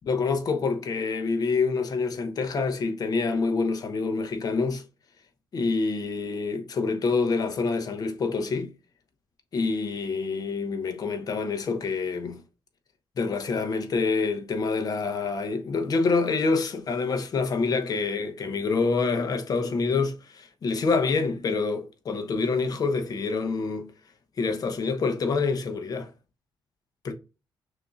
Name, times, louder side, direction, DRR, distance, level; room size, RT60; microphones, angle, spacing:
voice 1, 0.0-4.8 5.5-8.7 9.5-12.4 13.2-23.9 24.4-26.1 27.0-27.1, left 4 dB, 45° left, 1.0 m, -26 dB
6.2 x 2.7 x 2.4 m
cardioid pair, 100°, 9 cm